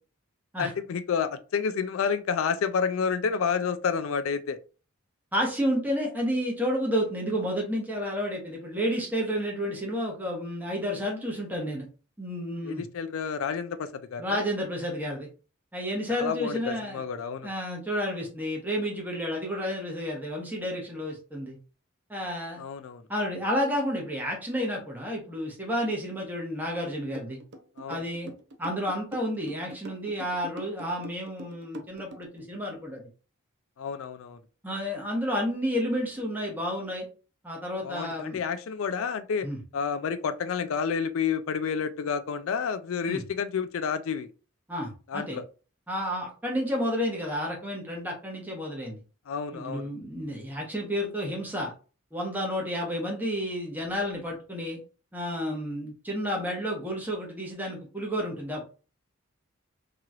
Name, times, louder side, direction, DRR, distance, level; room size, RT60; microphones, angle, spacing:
voice 1, 0.6-4.6 12.6-14.4 16.2-17.5 22.6-23.0 27.8-28.0 33.8-34.4 37.8-39.5 39.7-44.3 45.1-45.4 49.3-49.8, left 6 dB, 80° left, 0.4 m, -30 dB
voice 2, 5.3-11.9 12.2-12.8 14.2-15.3 15.7-17.0 17.4-21.6 22.1-22.6 23.1-27.4 27.9-28.3 28.6-33.0 34.6-37.1 37.4-38.4 39.4-39.6 43.1-43.2 44.7-45.4 45.9-49.0 49.5-51.7 52.1-54.8 55.1-58.6, equal, 10° right, 1.0 m, -31 dB
sound 1, 27.1-32.4, equal, 55° right, 0.5 m, -43 dB
3.0 x 2.9 x 2.4 m
head